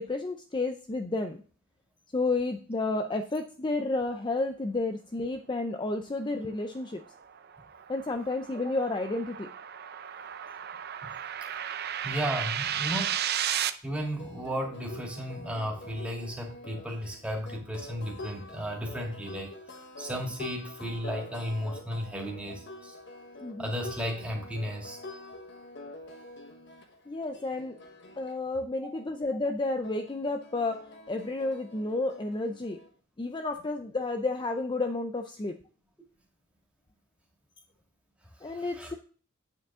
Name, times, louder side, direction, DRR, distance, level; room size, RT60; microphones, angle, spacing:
voice 1, 0.0-1.4 2.1-7.0 7.9-9.5 23.4-23.7 27.1-27.8 28.2-32.8 33.2-35.6 38.4-38.9, left 2 dB, 25° left, 6 dB, 0.5 m, -31 dB
sound 1, 6.8-13.7, right 10 dB, 50° right, 0.6 m, -34 dB
voice 2, 12.0-13.2 13.8-22.9 23.6-25.0 38.4-39.0, equal, 5° right, -1 dB, 2.4 m, -34 dB
sound 2, 13.9-28.4 29.8-32.9, left 2 dB, 55° left, 1.3 m, -46 dB
8.7 x 7.4 x 3.6 m, 0.40 s
head